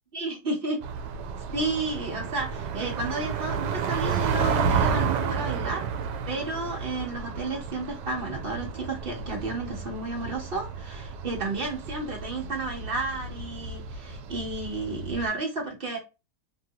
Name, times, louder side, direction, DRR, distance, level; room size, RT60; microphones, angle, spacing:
voice 1, 0.1-0.8 1.5-5.9 6.3-16.0, right 2 dB, 40° right, 0.9 m, -32 dB
sound 1, 0.8-15.3, right 6 dB, 80° right, 1.2 m, -31 dB
2.9 x 2.6 x 2.6 m
omnidirectional pair, 1.8 m